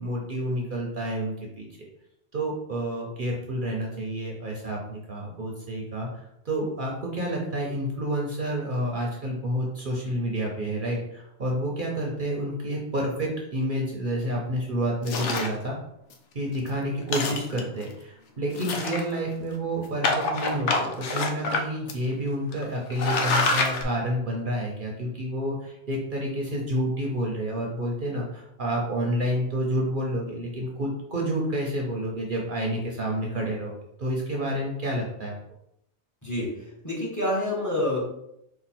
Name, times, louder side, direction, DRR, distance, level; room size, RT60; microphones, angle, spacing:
voice 1, 0.0-1.9 2.3-6.1 6.4-15.8 16.3-35.3, right 1 dB, 50° right, -1 dB, 0.8 m, -29 dB
sound 1, 15.1-15.6 16.1-16.2 16.5-16.7 17.0-17.8 18.5-19.3 20.0-21.6 21.9-22.0 22.5-22.6 22.9-23.8, left 3 dB, 85° left, 1.0 m, -26 dB
voice 2, 36.2-38.0, left 1 dB, 15° left, -4 dB, 1.1 m, -28 dB
4.4 x 2.5 x 4.2 m, 0.79 s
omnidirectional pair, 1.2 m